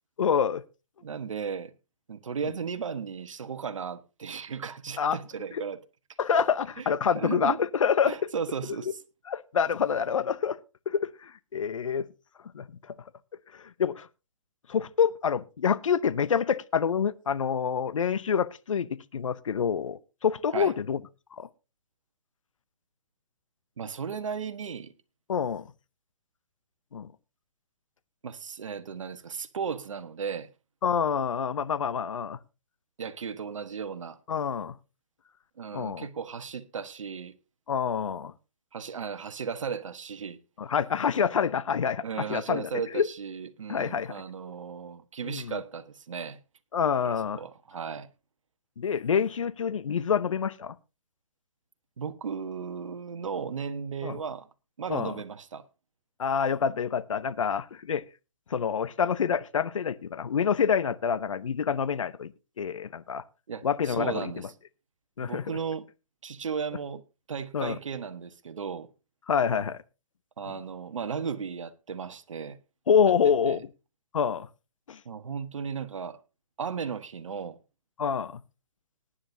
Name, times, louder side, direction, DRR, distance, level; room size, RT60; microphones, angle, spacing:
voice 1, 0.2-0.6 5.0-5.2 5.5-5.6 6.2-8.3 9.3-10.6 10.9-12.1 12.5-13.0 13.5-14.1 14.7-21.0 21.3-21.5 25.3-25.7 26.9-27.1 30.8-32.4 34.3-34.8 35.7-36.1 37.7-38.3 40.6-42.0 42.3-43.1 43.7-44.2 45.2-45.6 46.7-47.4 48.8-50.7 54.0-54.2 54.9-55.1 56.2-58.1 58.5-62.3 62.6-63.2 63.6-64.5 65.2-65.5 67.5-67.8 69.3-69.8 72.9-73.6 74.1-74.5 74.9-75.0 78.0-78.4, left 7 dB, 70° left, 0.8 m, -27 dB
voice 2, 1.0-1.7 2.1-5.8 6.8-7.6 8.0-9.0 20.5-20.7 23.8-24.9 28.2-30.5 33.0-34.2 35.6-37.4 38.7-40.4 42.0-46.4 47.0-48.1 52.0-54.5 54.8-55.6 63.5-64.5 65.2-65.9 66.2-67.0 67.3-68.9 70.4-72.6 73.5-73.6 75.0-76.2 76.6-77.6, right 6 dB, 70° right, 1.2 m, -35 dB
19.0 x 9.8 x 2.7 m
hypercardioid pair, 140°, 17 cm